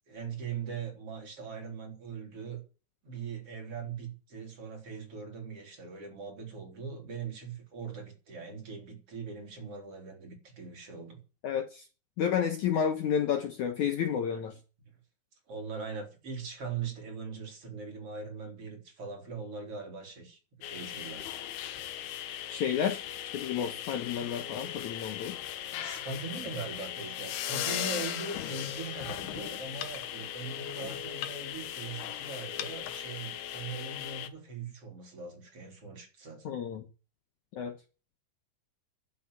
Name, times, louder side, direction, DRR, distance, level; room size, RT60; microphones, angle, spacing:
voice 1, 0.0-2.6 3.0-11.2 15.5-21.3 25.7-36.6, right 5 dB, 40° right, 4.3 m, -41 dB
voice 2, 11.4-11.8 12.2-14.6 22.5-23.0 23.3-25.4 36.5-36.8 37.5-37.7, left 8 dB, 65° left, 2.1 m, -30 dB
sound 1, 20.6-34.3, left 11 dB, 90° left, 3.2 m, -38 dB
11.5 x 9.7 x 8.2 m
omnidirectional pair, 4.4 m